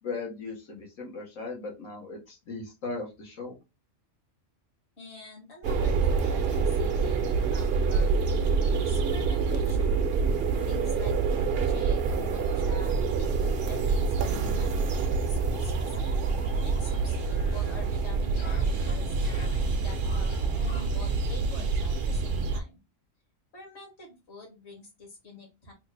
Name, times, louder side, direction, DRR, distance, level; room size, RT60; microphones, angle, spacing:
voice 1, 0.0-3.6, left 3 dB, 80° left, -1 dB, 1.6 m, -37 dB
voice 2, 5.0-10.0 10.7-15.8 16.4-22.8 23.5-25.7, left 2 dB, 60° left, 0 dB, 1.7 m, -47 dB
sound 1, 5.6-22.6, right 4 dB, 60° right, 0.7 m, -26 dB
sound 2, 15.1-21.0, left 3 dB, 40° left, 0.4 m, -49 dB
3.4 x 2.4 x 3.2 m, 0.25 s
omnidirectional pair, 1.3 m